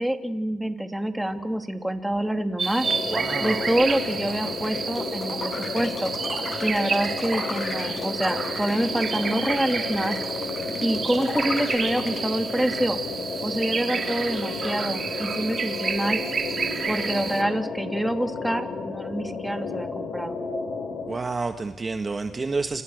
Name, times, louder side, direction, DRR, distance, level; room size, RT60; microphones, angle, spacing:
voice 1, 0.0-2.9 3.4-6.1 6.6-10.2 10.8-13.0 13.4-16.2 16.9-20.4, right 1 dB, 5° right, 6 dB, 3.0 m, -26 dB
sound 1, 2.6-17.4, right 5 dB, 40° right, 3.4 m, -30 dB
sound 2, 2.8-21.1, left 4 dB, 55° left, 6.0 m, -33 dB
sound 3, 3.1-12.2, left 4 dB, 35° left, 6.5 m, -36 dB
voice 2, 3.1-3.7 21.1-22.8, right 3 dB, 25° right, 7 dB, 1.7 m, -29 dB
30.0 x 29.5 x 6.7 m, 1.1 s
cardioid pair, 105°, 0 cm